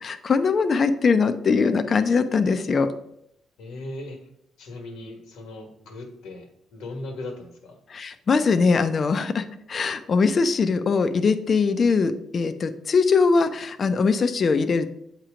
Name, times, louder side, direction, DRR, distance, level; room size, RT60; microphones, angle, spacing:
voice 1, 0.0-2.9 7.9-14.9, left 4 dB, 45° left, 9 dB, 0.6 m, -21 dB
voice 2, 3.6-4.2 4.6-7.8, left 2 dB, 90° left, 3 dB, 1.4 m, -38 dB
8.1 x 3.0 x 5.0 m, 0.75 s
cardioid pair, 90°, 0 cm